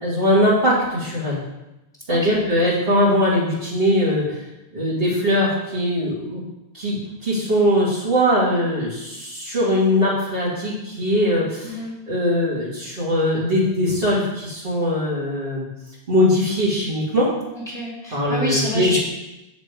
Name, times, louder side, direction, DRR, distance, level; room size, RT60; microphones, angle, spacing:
voice 1, 0.0-1.4 2.1-4.4 4.7-6.4 6.7-11.8 12.1-15.7 16.1-17.3 18.1-18.9, equal, 60° right, -7 dB, 2.5 m, -21 dB
voice 2, 2.1-2.4 11.6-11.9 17.5-19.0, left 1 dB, 5° left, -5 dB, 2.2 m, -27 dB
6.7 x 4.2 x 5.2 m, 0.96 s
omnidirectional pair, 1.1 m